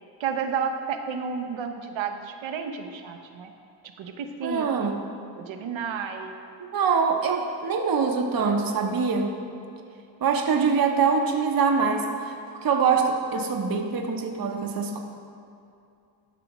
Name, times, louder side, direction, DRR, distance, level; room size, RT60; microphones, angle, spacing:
voice 1, 0.2-3.5 4.0-5.0 5.4-6.4, right 6 dB, 90° right, 6 dB, 0.8 m, -31 dB
voice 2, 4.4-5.0 6.7-9.3 10.2-15.0, right 5 dB, 50° right, 3 dB, 0.8 m, -24 dB
12.5 x 6.1 x 3.0 m, 2.5 s
cardioid pair, 75°, 45 cm